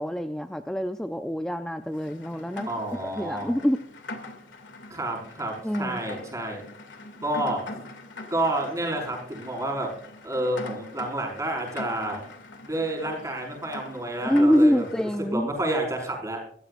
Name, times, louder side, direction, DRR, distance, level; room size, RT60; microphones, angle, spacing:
voice 1, 0.0-2.7 3.0-3.8 5.6-6.0 14.3-15.5, equal, 5° left, 7 dB, 0.5 m, -25 dB
Rain, 1.9-15.2, left 2 dB, 90° left, 2.4 m, -43 dB
voice 2, 2.7-3.5 4.9-6.6 7.2-7.7 8.3-9.9 10.2-12.2 12.6-14.8 15.3-16.4, right 1 dB, 20° right, 0 dB, 5.2 m, -29 dB
24.5 x 14.0 x 2.5 m, 0.65 s
head